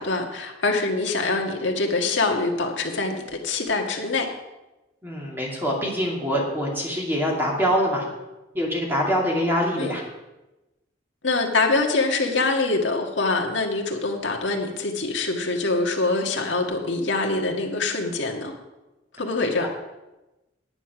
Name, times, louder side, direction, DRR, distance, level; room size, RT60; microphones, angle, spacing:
voice 1, 0.0-4.3 9.8-9.9 11.2-18.5 19.2-19.7, left 3 dB, 85° left, 2 dB, 1.7 m, -24 dB
voice 2, 5.0-8.1 8.5-10.0, equal, 10° right, -3 dB, 2.5 m, -24 dB
9.9 x 9.3 x 6.0 m, 1.0 s
head